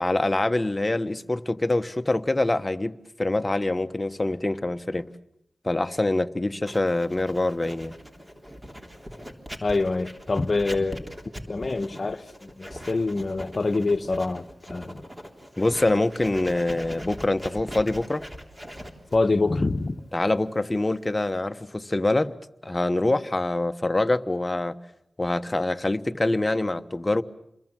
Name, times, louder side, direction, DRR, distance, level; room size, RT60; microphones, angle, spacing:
voice 1, 0.0-2.9 3.2-5.1 5.6-7.9 15.6-18.2 20.1-22.3 22.6-24.7 25.2-27.2, left 2 dB, 25° left, 1.1 m, -25 dB
Writing, 6.7-21.4, equal, 20° right, 3.4 m, -41 dB
voice 2, 9.6-11.1 11.5-15.0 19.1-20.0, left 3 dB, 45° left, 1.1 m, -25 dB
28.5 x 22.0 x 7.6 m
cardioid pair, 60°, 0 cm